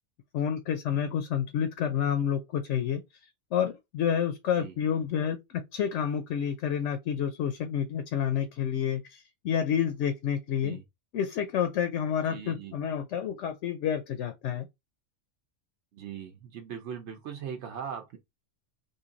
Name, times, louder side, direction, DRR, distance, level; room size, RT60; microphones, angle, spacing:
voice 1, 0.3-3.0 3.5-10.8 11.1-14.7, left 8 dB, 80° left, 0.9 m, -29 dB
voice 2, 12.2-12.7 15.9-18.2, right 8 dB, 75° right, 0.9 m, -40 dB
3.2 x 2.6 x 3.7 m
omnidirectional pair, 1.2 m